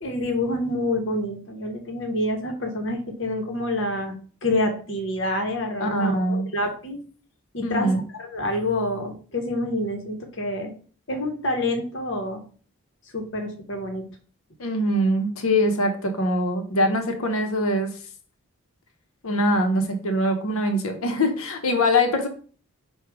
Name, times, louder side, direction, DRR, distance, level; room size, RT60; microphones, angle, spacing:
voice 1, 0.0-4.1 4.4-7.0 7.5-10.7 11.1-12.4 13.1-14.0, left 1 dB, 55° left, 4 dB, 1.0 m, -27 dB
voice 2, 5.8-6.5 7.6-8.0 14.6-17.9 19.2-22.3, left 1 dB, 75° left, 6 dB, 0.8 m, -23 dB
4.8 x 2.4 x 4.7 m, 0.41 s
head